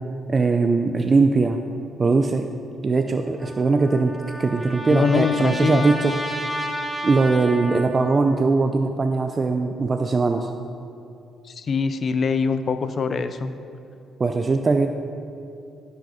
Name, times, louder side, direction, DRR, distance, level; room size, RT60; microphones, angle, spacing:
voice 1, 0.3-1.6 2.0-2.5 2.8-6.2 7.0-10.5 14.2-14.9, right 3 dB, 35° right, 6 dB, 0.4 m, -20 dB
Trumpet, 3.4-8.2, equal, 5° right, 1.3 m, -32 dB
voice 2, 4.9-5.9 11.5-13.5, left 5 dB, 50° left, 11 dB, 0.5 m, -23 dB
13.0 x 6.5 x 4.1 m, 2.6 s
cardioid pair, 90°, 0 cm